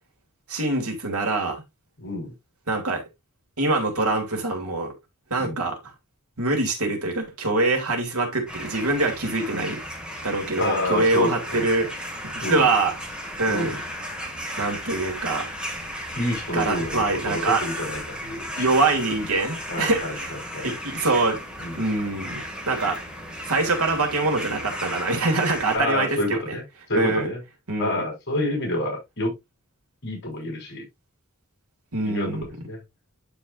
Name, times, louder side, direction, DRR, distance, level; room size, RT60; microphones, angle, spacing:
voice 1, 0.5-1.6 2.7-3.0 3.6-4.9 5.3-5.8 6.4-9.8 10.2-12.1 12.5-13.0 13.4-13.8 14.6-15.5 16.5-17.6 18.6-20.3 20.6-21.4 21.8-22.4 22.7-23.0 23.4-26.6 26.9-27.3 27.7-28.0 31.9-32.4, right 2 dB, 80° right, 2.9 m, -24 dB
voice 2, 2.0-2.3 5.4-5.6 10.6-11.6 12.4-12.7 13.5-13.7 16.2-18.7 19.7-20.7 21.6-21.8 25.7-26.6 26.9-27.4 27.8-29.3 30.0-30.8 32.0-32.8, left 1 dB, 50° left, 6.3 m, -28 dB
sound 1, 8.5-25.8, equal, 5° right, 2.1 m, -35 dB
12.0 x 5.1 x 2.5 m
head